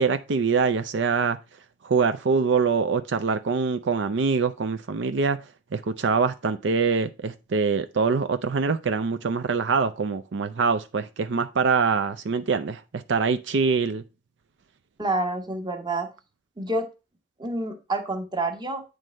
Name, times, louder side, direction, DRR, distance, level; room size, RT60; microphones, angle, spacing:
voice 1, 0.0-1.4 1.8-5.4 5.7-14.0, right 5 dB, 70° right, 0.5 m, -24 dB
voice 2, 15.0-16.1 16.6-16.9 17.4-18.8, right 2 dB, 20° right, 1.2 m, -28 dB
9.1 x 3.3 x 6.3 m
head